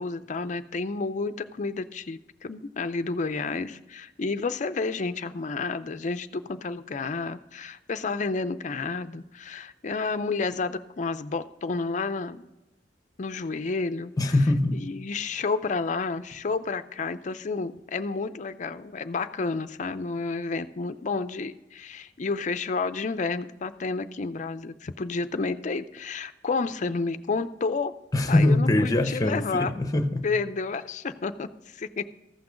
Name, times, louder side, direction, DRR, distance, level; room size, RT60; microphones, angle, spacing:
voice 1, 0.0-12.5 13.2-14.1 14.7-27.9 28.3-29.7 30.2-32.0, left 4 dB, 45° left, 0.5 m, -30 dB
voice 2, 14.2-14.8 28.1-30.3, left 1 dB, 20° left, 0.8 m, -22 dB
14.5 x 6.0 x 5.0 m
head